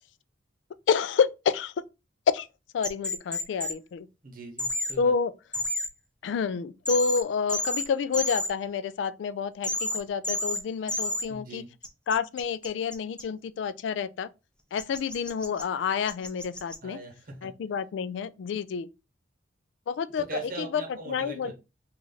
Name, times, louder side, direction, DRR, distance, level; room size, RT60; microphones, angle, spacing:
voice 1, 0.9-1.7 2.3-2.5 2.7-4.1 5.0-5.3 6.2-11.6 12.1-14.3 14.7-17.0 17.4-18.9 19.9-21.5, left 6 dB, 80° left, 0.3 m, -29 dB
sound 1, 2.8-3.7 4.6-4.9 5.5-5.9 6.9-7.2 7.5-7.8 8.1-8.5 9.6-10.0 10.2-10.6 10.9-11.2 11.8-13.2 14.8-15.6 16.1-16.8, left 1 dB, 5° left, 0.5 m, -30 dB
voice 2, 4.2-5.1 11.3-11.7 16.8-17.5 20.3-21.5, right 3 dB, 50° right, 1.1 m, -40 dB
3.1 x 2.4 x 4.0 m
head